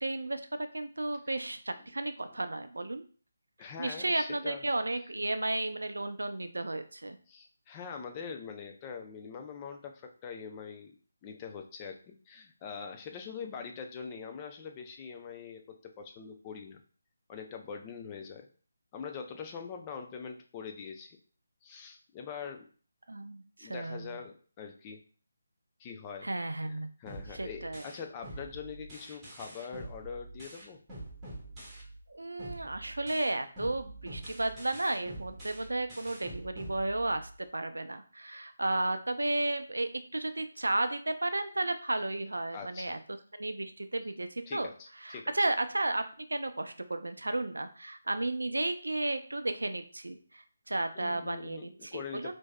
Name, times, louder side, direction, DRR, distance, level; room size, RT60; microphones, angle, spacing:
voice 1, 0.0-3.0 3.8-7.2 23.1-24.2 26.2-26.9 27.3-27.8 32.1-43.0 43.3-44.7 45.0-52.3, right 2 dB, 75° right, 9 dB, 0.4 m, -33 dB
voice 2, 3.6-4.7 7.3-11.0 11.2-16.8 17.3-18.5 18.9-21.2 21.6-22.7 23.6-25.0 25.8-26.3 26.6-30.8 42.5-43.0 44.5-45.5 50.9-52.3, left 6 dB, 20° left, 4 dB, 0.5 m, -43 dB
sound 1, 27.1-32.1 32.4-37.4, right 1 dB, 15° right, 1.1 m, -46 dB
4.5 x 2.6 x 2.2 m, 0.41 s
figure-of-eight pair, 150°, 0 cm